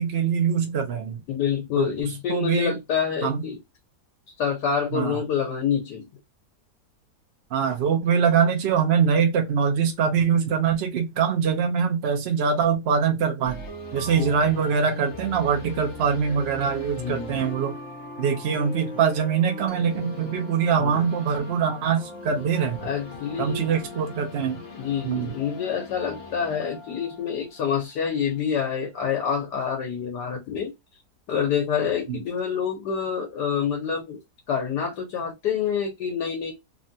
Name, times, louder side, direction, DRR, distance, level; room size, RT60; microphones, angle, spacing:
voice 1, 0.0-1.2 1.8-1.9 2.3-2.7 3.2-3.4 4.9-5.2 7.5-13.6 13.9-17.8 18.2-22.8 23.4-24.6 25.0-25.3 32.1-32.2, right 7 dB, 65° right, 0.6 m, -23 dB
voice 2, 1.3-3.6 4.4-6.1 14.2-14.3 17.0-17.5 20.8-21.1 22.8-23.7 24.8-30.7 31.3-34.2 34.5-36.5, left 7 dB, 80° left, 1.3 m, -27 dB
sound 1, 13.4-28.3, left 3 dB, 45° left, 0.9 m, -40 dB
3.3 x 2.2 x 2.6 m
omnidirectional pair, 1.8 m